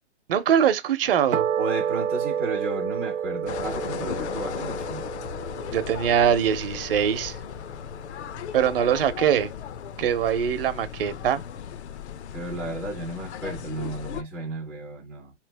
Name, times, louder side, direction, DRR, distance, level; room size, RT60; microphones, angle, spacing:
voice 1, 0.3-1.5 5.7-7.4 8.5-9.5 10.0-11.4, right 9 dB, 50° right, 0.8 m, -22 dB
sound 1, 1.3-7.8, right 8 dB, 80° right, 0.8 m, -30 dB
voice 2, 1.6-5.0 12.3-15.3, right 2 dB, ahead, 0.4 m, -33 dB
sound 2, 3.5-14.2, left 9 dB, 65° left, 0.6 m, -36 dB
3.5 x 3.2 x 3.3 m
hypercardioid pair, 145°, 37 cm